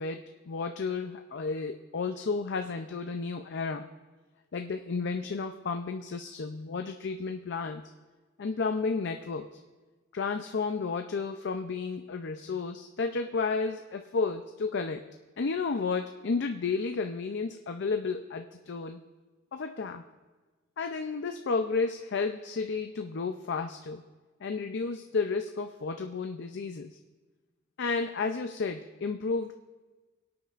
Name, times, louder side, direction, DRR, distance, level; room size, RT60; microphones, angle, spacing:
voice 1, 0.0-3.9 4.5-7.8 8.4-9.6 10.1-15.0 15.4-19.0 19.5-20.0 20.8-24.0 24.4-27.0 27.8-29.5, left 4 dB, 60° left, 6 dB, 0.5 m, -32 dB
25.5 x 8.7 x 2.5 m, 1.3 s
head